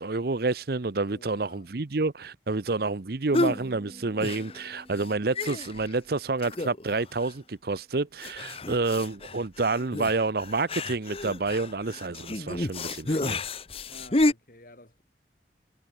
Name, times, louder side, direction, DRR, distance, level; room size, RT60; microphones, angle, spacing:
voice 1, 0.0-13.4, right 3 dB, 60° right, 0.8 m, -29 dB
voice 2, 1.1-1.7 13.9-15.0, left 1 dB, 50° left, 4.4 m, -52 dB
sound 1, 3.3-3.6 4.2-4.7 5.0-5.1 5.3-5.9 6.4-6.9 7.2-7.3 8.2-14.3, left 2 dB, 35° left, 1.1 m, -30 dB
sound 2, 3.4-7.7, equal, 20° right, 4.2 m, -51 dB
head